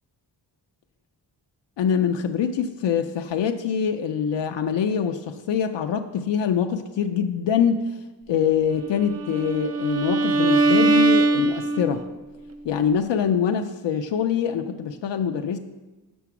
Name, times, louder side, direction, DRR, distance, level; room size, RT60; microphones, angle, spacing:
voice 1, 1.8-8.0 8.3-12.0 12.6-15.6, left 7 dB, 80° left, 6 dB, 0.5 m, -24 dB
Bowed string instrument, 9.0-12.2, right 2 dB, 35° right, 0.4 m, -21 dB
7.1 x 5.8 x 5.9 m, 1.2 s
wide cardioid pair, 140°, 43 cm